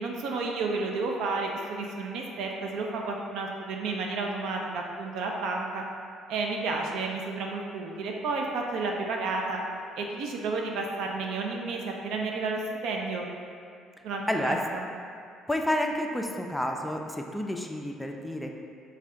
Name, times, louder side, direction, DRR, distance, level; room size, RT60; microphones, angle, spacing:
voice 1, 0.0-5.8 6.3-9.6 10.0-13.3 14.0-14.8, right 3 dB, 65° right, 0 dB, 0.3 m, -31 dB
voice 2, 14.3-14.6 15.5-18.6, left 1 dB, 5° left, 2 dB, 0.3 m, -30 dB
3.2 x 2.2 x 3.6 m, 2.3 s
hypercardioid pair, 50°, 0 cm